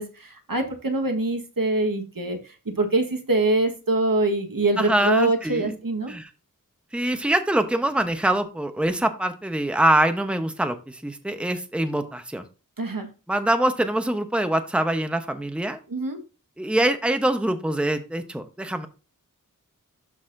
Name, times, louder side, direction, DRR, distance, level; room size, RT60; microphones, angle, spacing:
voice 1, 0.0-2.4 2.6-6.1 12.8-13.1 15.9-16.2, right 2 dB, 80° right, 4 dB, 1.4 m, -24 dB
voice 2, 4.8-5.8 6.1-6.3 6.9-12.4 13.3-15.8 16.6-18.9, right 1 dB, 5° right, 8 dB, 0.8 m, -24 dB
12.5 x 4.1 x 2.6 m, 0.32 s
wide cardioid pair, 45°, 34 cm